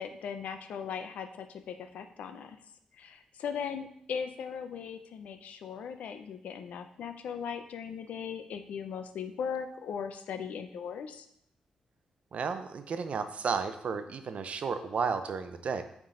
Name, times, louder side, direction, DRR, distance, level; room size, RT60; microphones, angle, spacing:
voice 1, 0.0-2.6 2.9-11.3, left 7 dB, 85° left, 8 dB, 0.6 m, -38 dB
voice 2, 12.3-15.8, right 5 dB, 65° right, 9 dB, 0.6 m, -33 dB
9.0 x 3.7 x 3.8 m, 0.72 s
cardioid pair, 75°, 2 cm